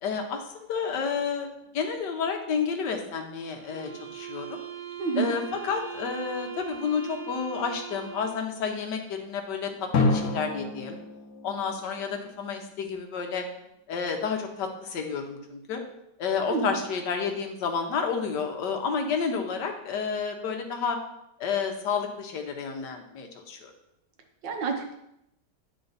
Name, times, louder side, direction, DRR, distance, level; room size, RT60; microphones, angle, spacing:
voice 1, 0.0-1.5 1.7-4.6 5.2-11.0 11.4-13.4 13.9-15.8 16.2-21.0 21.4-23.7, left 6 dB, 75° left, 4 dB, 1.5 m, -30 dB
sound 1, 3.6-8.5, right 9 dB, 65° right, 0.4 m, -40 dB
voice 2, 5.0-5.3 16.5-16.8 24.4-24.9, right 5 dB, 85° right, 3 dB, 1.7 m, -28 dB
Drum, 9.9-12.6, left 3 dB, 60° left, 1.4 m, -29 dB
9.1 x 4.3 x 4.0 m, 0.81 s
omnidirectional pair, 1.9 m